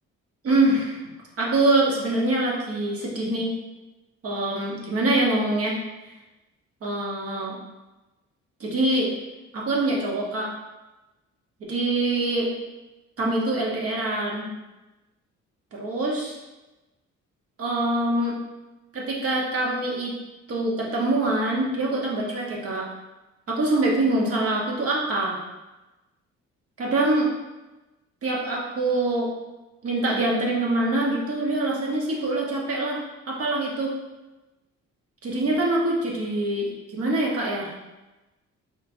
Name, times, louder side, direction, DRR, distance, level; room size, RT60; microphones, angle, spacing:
voice 1, 0.4-1.0 1.4-3.5 4.2-5.8 6.8-7.6 8.6-9.1 9.5-10.5 11.7-12.5 13.2-14.5 15.7-16.4 17.6-18.4 18.9-20.2 20.5-22.9 23.5-25.4 26.8-27.3 28.2-29.3 29.8-33.0 33.3-33.9 35.2-37.7, right 2 dB, 50° right, -3 dB, 1.0 m, -24 dB
4.4 x 3.1 x 2.6 m, 1.1 s
cardioid pair, 90°, 30 cm